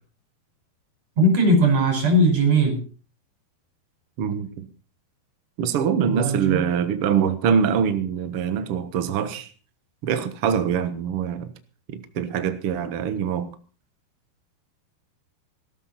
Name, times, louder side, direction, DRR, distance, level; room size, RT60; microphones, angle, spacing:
voice 1, 1.2-2.8 6.1-6.7, right 1 dB, 40° right, 6.1 m, -19 dB
voice 2, 4.2-4.6 5.6-9.5 10.0-11.5 11.9-13.5, right 7 dB, 80° right, 1.3 m, -24 dB
17.5 x 14.5 x 4.2 m
omnidirectional pair, 4.7 m